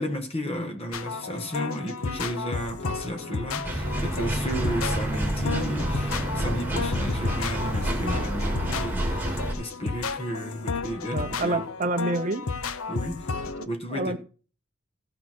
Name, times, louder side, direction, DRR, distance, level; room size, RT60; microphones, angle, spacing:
voice 1, 0.0-11.6 12.9-13.3 13.7-14.2, equal, 25° left, 1.4 m, -33 dB
sound 1, 0.9-13.6, left 4 dB, 75° left, 0.8 m, -33 dB
sound 2, 3.6-9.5, right 1 dB, 10° right, 2.6 m, -28 dB
voice 2, 11.1-12.5 13.6-14.2, right 2 dB, 35° right, 0.6 m, -28 dB
15.5 x 5.8 x 6.1 m
head